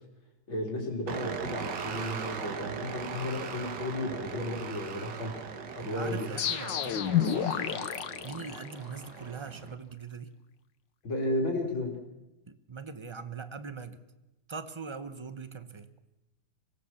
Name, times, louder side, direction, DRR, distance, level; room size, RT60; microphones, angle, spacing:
voice 1, 0.5-6.3 11.0-12.0, left 1 dB, 90° left, 0 dB, 3.9 m, -33 dB
sound 1, 1.1-9.7, right 6 dB, 65° right, 1.8 m, -40 dB
voice 2, 5.8-7.9 8.2-10.3 12.5-14.0 14.5-15.9, right 5 dB, 30° right, 11 dB, 0.6 m, -42 dB
sound 2, 6.4-9.2, left 9 dB, 70° left, 1.7 m, -30 dB
25.0 x 18.0 x 7.2 m, 0.97 s
omnidirectional pair, 2.1 m